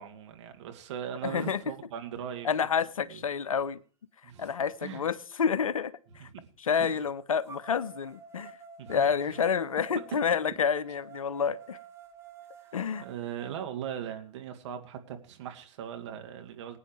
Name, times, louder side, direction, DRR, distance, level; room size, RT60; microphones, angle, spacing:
voice 1, 0.0-2.5 3.0-3.2 4.2-4.5 4.8-5.1 6.2-6.5 6.8-7.0 8.8-9.4 12.6-16.8, right 9 dB, 55° right, 5 dB, 2.2 m, -40 dB
voice 2, 1.2-1.6 2.4-3.8 4.4-5.9 6.2-6.3 6.6-8.5 8.9-11.8 12.7-13.0, left 6 dB, 75° left, 17 dB, 0.8 m, -29 dB
sound 1, 3.6-3.7 4.3-6.2 7.5-13.5, right 5 dB, 15° right, 2.1 m, -51 dB
20.5 x 9.6 x 3.2 m, 0.42 s
figure-of-eight pair, 105°, 18 cm